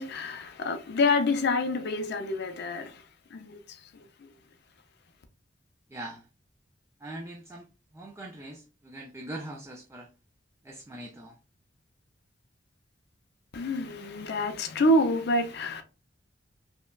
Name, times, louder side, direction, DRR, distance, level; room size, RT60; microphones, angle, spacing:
voice 1, 0.0-3.0 3.3-4.3 13.5-15.8, left 1 dB, 60° left, 0.5 m, -27 dB
voice 2, 5.9-6.3 7.0-7.7 7.9-10.1 10.6-11.4, right 1 dB, 15° right, 0.4 m, -42 dB
5.1 x 2.2 x 2.3 m
head